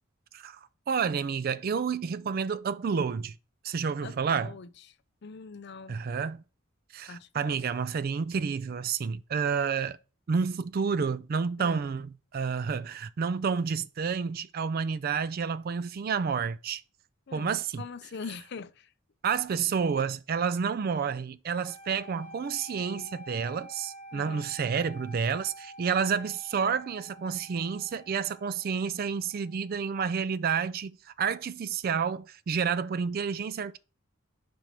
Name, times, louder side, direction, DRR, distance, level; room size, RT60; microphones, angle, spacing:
voice 1, 0.9-3.4 3.6-4.5 5.9-6.4 6.9-10.0 10.3-16.8 17.3-17.8 19.2-33.8, right 6 dB, 45° right, 0.3 m, -30 dB
voice 2, 4.0-5.0 5.2-6.0 7.1-7.6 11.6-11.8 17.3-17.5 17.8-18.9 24.1-24.5, left 5 dB, 50° left, 0.5 m, -43 dB
sound 1, 21.6-29.7, right 1 dB, 10° left, 2.8 m, -48 dB
5.2 x 4.7 x 5.7 m
head